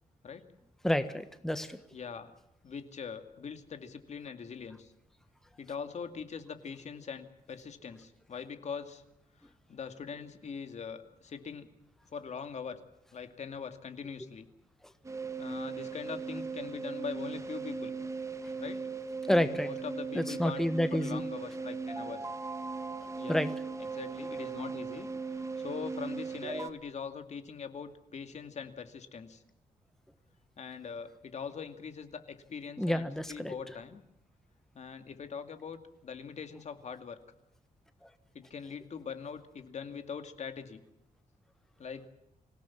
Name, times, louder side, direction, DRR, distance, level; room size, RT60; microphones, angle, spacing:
voice 1, 0.8-1.8 19.3-19.7 20.1-21.2 23.3-23.5 32.8-33.6 38.0-38.1, left 1 dB, 5° left, 10 dB, 1.3 m, -29 dB
voice 2, 1.9-2.3 2.6-4.9 5.6-9.0 9.7-11.7 12.1-12.8 13.1-14.5 15.4-17.9 18.6-18.8 19.6-20.7 20.9-22.2 23.2-23.4 23.9-25.1 25.6-29.4 30.6-34.0 34.7-37.2 38.3-40.8 41.8-42.1, left 6 dB, 50° left, 8 dB, 2.3 m, -42 dB
sound 1, 15.0-26.7, right 4 dB, 20° right, 1.5 m, -38 dB
26.0 x 17.0 x 7.4 m, 0.84 s
wide cardioid pair, 140°, 15 cm